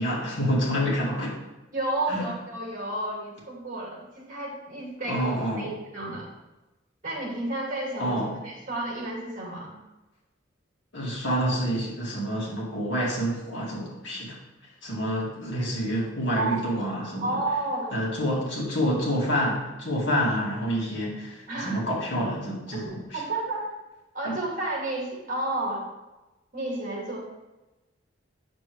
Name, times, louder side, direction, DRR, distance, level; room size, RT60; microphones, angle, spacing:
voice 1, 0.0-1.3 2.1-2.2 5.0-5.7 8.0-8.4 10.9-14.4 14.8-17.4 17.9-23.2 24.2-24.3, equal, 70° left, -4 dB, 2.3 m, -28 dB
voice 2, 1.7-5.3 5.6-6.3 7.0-9.8 16.3-16.6 17.2-17.9 18.3-18.4 21.5-21.8 22.7-23.6 24.1-25.9 26.5-27.2, right 2 dB, 45° right, -3 dB, 2.6 m, -31 dB
9.3 x 6.6 x 3.2 m, 1.0 s
head